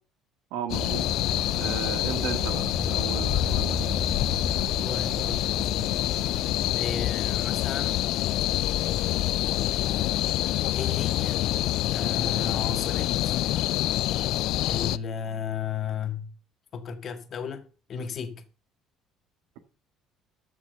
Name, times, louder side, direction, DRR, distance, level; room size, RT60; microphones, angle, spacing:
voice 1, 0.5-1.0 1.6-3.8, right 9 dB, 80° right, 1.8 m, -35 dB
sound 1, 0.7-15.0, left 15 dB, 70° left, 0.5 m, -26 dB
sound 2, 0.7-6.7, right 3 dB, 10° right, 3.7 m, -37 dB
voice 2, 4.8-6.0 6.8-8.0 10.7-11.4 11.9-13.4 14.7-16.3 16.7-18.4, left 6 dB, 50° left, 2.0 m, -34 dB
13.5 x 6.0 x 6.8 m
supercardioid pair, 75°, 0 cm